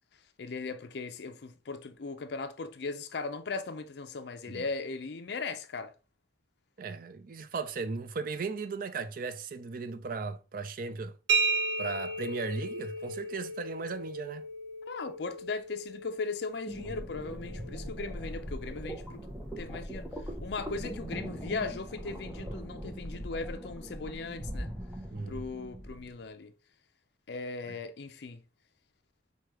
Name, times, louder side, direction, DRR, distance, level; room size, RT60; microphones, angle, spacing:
voice 1, 0.4-5.9 14.9-19.2 19.6-20.1 20.4-24.7 25.3-26.5 27.3-28.4, left 4 dB, 60° left, 0.5 m, -38 dB
voice 2, 6.8-11.1 11.8-14.4 25.1-25.4 27.7-27.8, right 4 dB, 45° right, 0.4 m, -36 dB
sound 1, 11.3-18.8, right 3 dB, 80° right, 0.7 m, -35 dB
sound 2, 16.7-26.1, equal, 5° right, 0.6 m, -40 dB
4.8 x 2.3 x 3.0 m
head